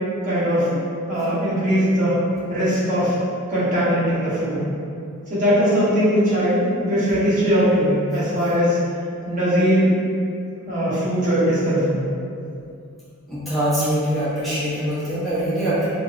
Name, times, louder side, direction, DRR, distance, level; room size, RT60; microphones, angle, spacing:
voice 1, 0.2-0.8 1.1-2.2 2.5-3.1 3.5-4.7 5.3-8.8 9.2-9.9 10.7-12.0, equal, 35° right, -10 dB, 0.7 m, -20 dB
voice 2, 13.3-15.9, right 1 dB, ahead, -13 dB, 0.7 m, -23 dB
2.6 x 2.0 x 2.3 m, 2.4 s
head